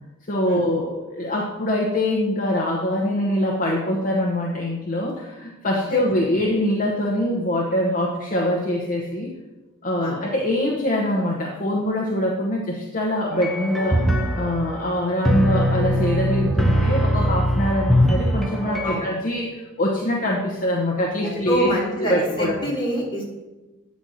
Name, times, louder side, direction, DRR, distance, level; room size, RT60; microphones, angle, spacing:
voice 1, 0.3-9.3 9.8-14.0 14.4-21.7 22.0-22.7, left 1 dB, 40° left, -1 dB, 1.0 m, -23 dB
sound 1, 13.3-19.0, equal, ahead, 0.8 m, -21 dB
voice 2, 21.2-23.2, equal, 25° left, -5 dB, 2.9 m, -26 dB
9.4 x 4.1 x 6.3 m, 1.1 s
head